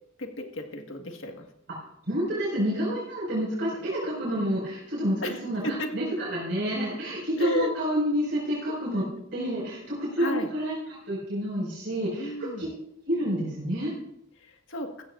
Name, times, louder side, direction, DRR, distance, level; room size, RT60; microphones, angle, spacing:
voice 1, 0.2-1.5 5.2-5.9 7.4-7.7 10.2-10.5 12.2-12.7 14.5-14.9, left 2 dB, 75° left, 4 dB, 1.7 m, -33 dB
voice 2, 2.1-12.7 13.1-13.9, equal, 60° right, -6 dB, 5.5 m, -29 dB
15.5 x 14.5 x 2.5 m, 0.76 s
head